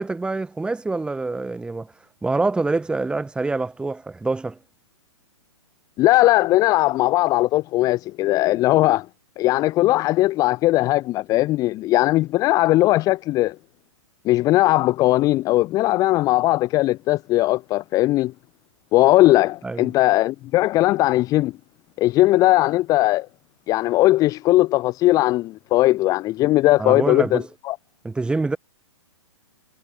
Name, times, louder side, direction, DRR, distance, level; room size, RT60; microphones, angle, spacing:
voice 1, 0.0-1.9 2.2-4.6 19.6-19.9 26.8-27.5 28.0-28.6, right 3 dB, 5° right, 4.5 m, -25 dB
voice 2, 6.0-9.1 9.4-13.6 14.2-18.3 18.9-21.5 22.0-23.3 23.7-27.8, left 17 dB, 20° left, 0.7 m, -19 dB
hypercardioid pair, 150°, 17 cm